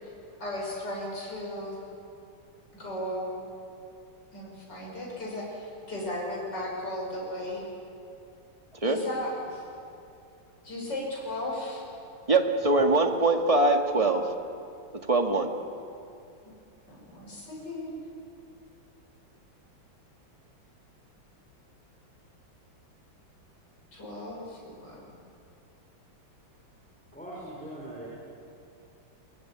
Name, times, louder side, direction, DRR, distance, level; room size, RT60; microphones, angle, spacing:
voice 1, 0.4-1.8 2.7-3.4 4.3-7.6 8.8-9.7 10.6-11.8 16.9-17.9 23.9-25.2, left 1 dB, 60° left, -3 dB, 7.3 m, -35 dB
voice 2, 12.3-14.2 15.1-15.5, right 2 dB, 20° right, 4 dB, 1.7 m, -22 dB
voice 3, 27.1-28.1, right 1 dB, 5° left, -5 dB, 5.8 m, -40 dB
24.0 x 22.5 x 10.0 m, 2.6 s
omnidirectional pair, 2.2 m